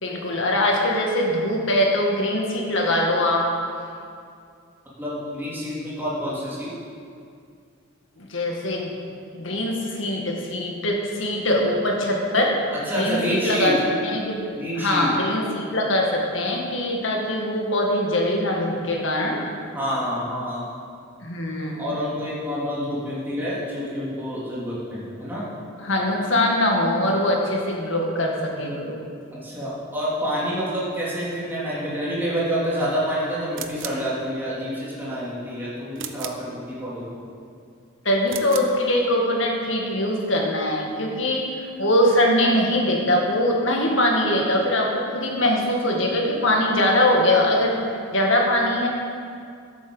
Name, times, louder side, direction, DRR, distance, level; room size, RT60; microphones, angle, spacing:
voice 1, 0.0-3.5 8.2-8.9 9.4-12.6 13.0-13.7 14.1-14.4 14.7-19.4 21.2-21.9 25.8-29.0 38.0-41.5 41.8-48.9, left 1 dB, 60° left, 0 dB, 2.1 m, -22 dB
voice 2, 5.0-6.7 12.8-13.7 14.5-15.1 19.7-20.6 21.8-25.5 29.3-37.2, equal, 10° right, -8 dB, 3.3 m, -28 dB
sound 1, 33.5-34.1 36.0-36.5 38.2-38.8, right 9 dB, 65° right, 0.8 m, -35 dB
11.0 x 8.8 x 7.2 m, 2.3 s
head